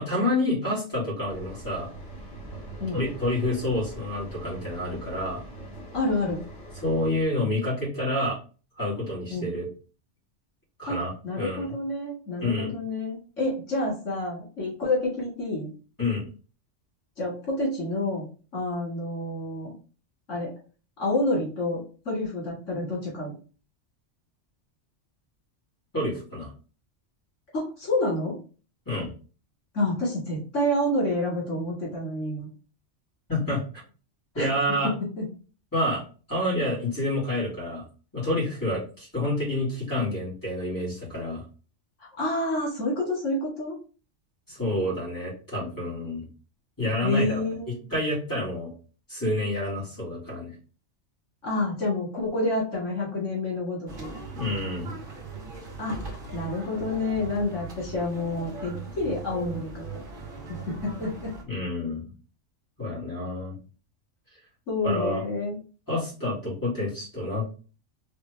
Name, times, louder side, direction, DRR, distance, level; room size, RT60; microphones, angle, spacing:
voice 1, 0.0-1.9 2.9-5.4 6.8-8.4 8.8-9.7 10.8-11.7 12.4-12.7 16.0-16.2 25.9-26.5 28.9-29.1 33.3-33.6 34.3-34.9 35.7-36.0 36.3-37.8 38.1-41.4 44.5-46.3 46.8-47.4 47.9-48.7 49.1-50.5 54.3-54.9 61.5-62.1 62.8-63.6 64.8-65.2 65.9-67.4, left 1 dB, 15° left, -7 dB, 2.7 m, -28 dB
sound 1, 1.3-7.2, right 2 dB, 55° left, 2.4 m, -42 dB
voice 2, 5.9-6.4 9.3-9.5 10.9-15.7 17.2-18.3 18.5-19.7 20.3-20.5 21.0-23.3 27.5-28.4 29.7-32.5 34.3-34.5 34.8-35.2 42.2-43.7 47.0-47.8 51.4-54.1 55.8-60.0 60.5-61.3 64.7-65.6, left 2 dB, 80° left, -5 dB, 2.4 m, -28 dB
sound 2, 53.9-61.4, right 4 dB, 45° right, 1.2 m, -39 dB
4.4 x 3.6 x 3.3 m, 0.37 s
omnidirectional pair, 1.3 m